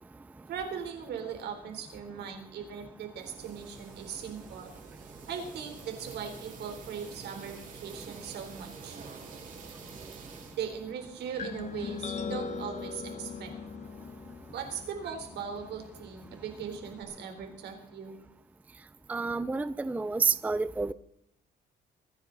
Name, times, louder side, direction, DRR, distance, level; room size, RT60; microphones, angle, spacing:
voice 1, 0.5-4.7 5.3-9.0 10.6-13.5 14.5-18.2, right 7 dB, 75° right, 5 dB, 3.6 m, -39 dB
sound 1, 3.2-10.6, right 5 dB, 50° right, 3.6 m, -48 dB
sound 2, 11.4-17.0, left 5 dB, 40° left, 1.1 m, -41 dB
voice 2, 19.1-20.9, right 4 dB, 10° right, 14 dB, 0.4 m, -29 dB
24.0 x 10.0 x 4.0 m, 0.78 s
cardioid pair, 130°, 18 cm